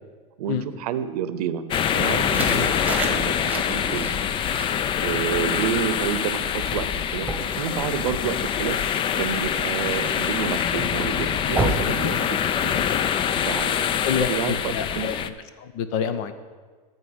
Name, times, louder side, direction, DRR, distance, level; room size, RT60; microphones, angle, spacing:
voice 1, 0.4-1.6 1.9-4.2 5.0-7.3 7.6-8.8 9.1-13.0 13.4-15.1, right 9 dB, 85° right, 12 dB, 0.7 m, -30 dB
sound 1, 1.7-15.3, left 8 dB, 25° left, 0.4 m, -25 dB
sound 2, 2.1-12.8, right 3 dB, 10° right, 1.4 m, -34 dB
voice 2, 11.6-11.9 14.0-15.2 15.6-16.3, left 8 dB, 60° left, 11 dB, 0.9 m, -28 dB
13.0 x 4.4 x 7.9 m, 1.5 s
supercardioid pair, 130°, 19 cm